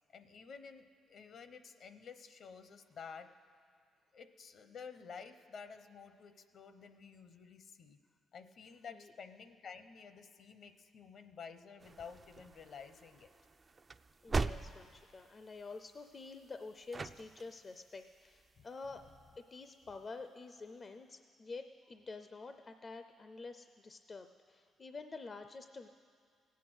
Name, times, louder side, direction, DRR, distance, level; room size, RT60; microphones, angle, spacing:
voice 1, 0.1-3.3 4.1-8.0 8.3-13.3 18.6-18.7, left 6 dB, 60° left, 10 dB, 0.8 m, -52 dB
sound 1, 11.8-19.1, right 4 dB, 30° right, 0.3 m, -43 dB
voice 2, 14.2-19.1 19.4-25.9, left 3 dB, 35° left, 8 dB, 0.5 m, -48 dB
17.5 x 8.3 x 6.2 m, 2.1 s
cardioid pair, 90°, 0 cm